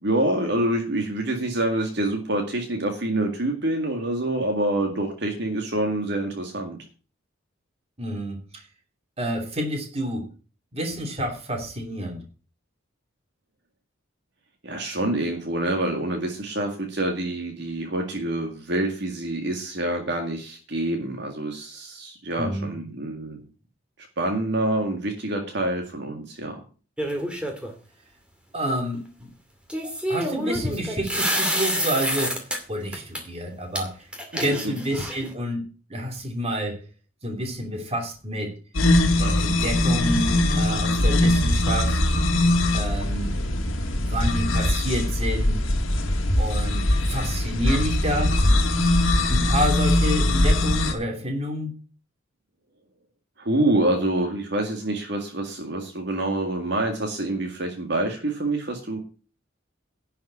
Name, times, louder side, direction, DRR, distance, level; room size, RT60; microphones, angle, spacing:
voice 1, 0.0-6.8 14.6-23.4 24.2-26.6 34.3-34.7 53.4-59.0, right 1 dB, 55° right, 3 dB, 2.0 m, -26 dB
voice 2, 8.0-8.6 9.2-10.3 10.7-12.2 22.4-22.7 28.5-29.1 30.1-34.0 34.4-36.8 37.2-38.6 39.2-42.0 42.7-43.4 43.9-45.6 46.4-48.4 49.3-51.7, equal, 30° right, 2 dB, 2.9 m, -29 dB
sound 1, 27.0-27.7 29.7-32.6 32.9-33.2 33.7-33.8 34.1-35.3, equal, 5° right, 2.3 m, -27 dB
sound 2, 38.7-50.9, left 1 dB, 75° left, 1.9 m, -21 dB
11.0 x 5.6 x 8.6 m, 0.36 s
head